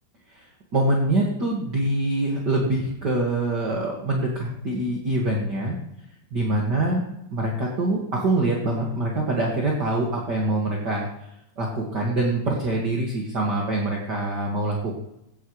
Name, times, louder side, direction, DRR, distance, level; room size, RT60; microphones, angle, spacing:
voice 1, 0.7-5.8 6.3-11.1 11.6-14.9, right 2 dB, 40° right, -2 dB, 1.6 m, -24 dB
17.0 x 11.5 x 3.3 m, 0.81 s
omnidirectional pair, 4.8 m